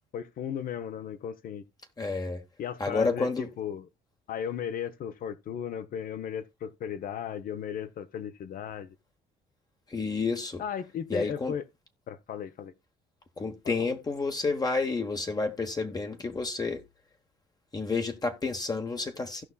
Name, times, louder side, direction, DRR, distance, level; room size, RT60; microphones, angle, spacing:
voice 1, 0.1-1.6 2.6-3.9 4.3-8.9 10.6-11.6 12.1-12.7 13.6-13.7, left 8 dB, 55° left, 1.0 m, -36 dB
voice 2, 2.0-2.4 2.8-3.5 9.9-10.6 11.1-11.5 13.4-16.8 17.7-19.4, left 3 dB, 25° left, 1.1 m, -30 dB
16.5 x 5.6 x 2.3 m
cardioid pair, 110°, 17 cm